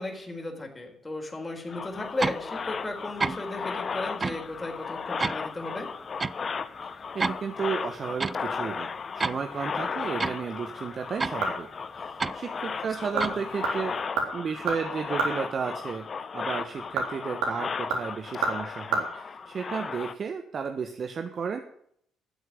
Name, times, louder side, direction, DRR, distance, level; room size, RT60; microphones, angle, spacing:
voice 1, 0.0-5.9 13.1-13.4, left 2 dB, 25° left, 1 dB, 4.4 m, -35 dB
sound 1, 1.7-20.1, left 5 dB, 45° left, 0.9 m, -35 dB
sound 2, 2.2-2.4 3.2-3.4 4.2-4.4 5.2-5.4 6.2-6.3 7.2-7.4 8.2-8.4 9.2-9.4 10.2-10.4 11.2-11.4 12.2-12.4 13.2-13.4, right 4 dB, 30° right, 0.5 m, -28 dB
voice 2, 7.1-8.9 9.1-11.7 11.9-14.0 14.3-16.1 16.3-21.6, right 6 dB, 50° right, 7 dB, 1.2 m, -33 dB
sound 3, 10.9-11.8 12.2-12.3 12.9-13.3 13.6-15.4 16.7-19.0 19.3-19.4, right 4 dB, 75° right, 3.6 m, -30 dB
12.5 x 8.0 x 9.4 m, 0.68 s
hypercardioid pair, 50°, 0 cm